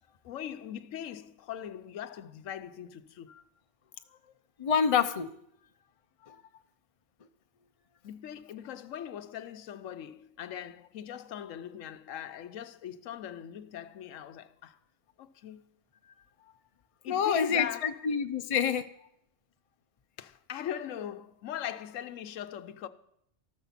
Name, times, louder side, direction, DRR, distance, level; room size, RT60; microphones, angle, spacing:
voice 1, 0.2-3.3 8.0-14.8 15.2-15.6 17.0-18.0 18.3-18.4 20.2-22.9, left 10 dB, 85° left, 1.1 m, -40 dB
voice 2, 4.6-5.3 6.2-6.4 17.1-18.9, left 7 dB, 35° left, 0.6 m, -27 dB
13.5 x 13.0 x 5.8 m
omnidirectional pair, 1.3 m